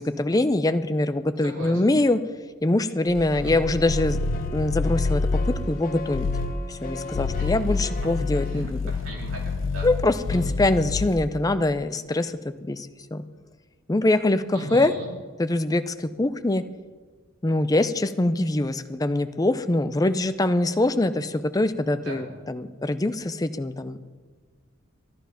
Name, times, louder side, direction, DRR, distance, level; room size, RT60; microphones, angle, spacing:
voice 1, 0.0-2.2 2.6-4.2 4.5-5.4 5.7-6.3 6.7-8.8 9.8-13.2 13.9-14.9 15.4-16.6 17.4-24.0, left 2 dB, 20° left, 11 dB, 0.5 m, -23 dB
voice 2, 1.4-1.9 3.3-3.6 7.4-7.8 8.4-9.9 10.3-10.5 14.5-15.1 21.9-22.2, right 1 dB, 85° right, -3 dB, 3.7 m, -39 dB
sound 1, 3.1-5.7 6.1-6.6 7.0-11.3, left 3 dB, 65° left, 0.5 m, -28 dB
sound 2, 3.5-8.5, left 2 dB, 45° left, 0.9 m, -38 dB
12.5 x 11.5 x 5.7 m, 1.5 s
head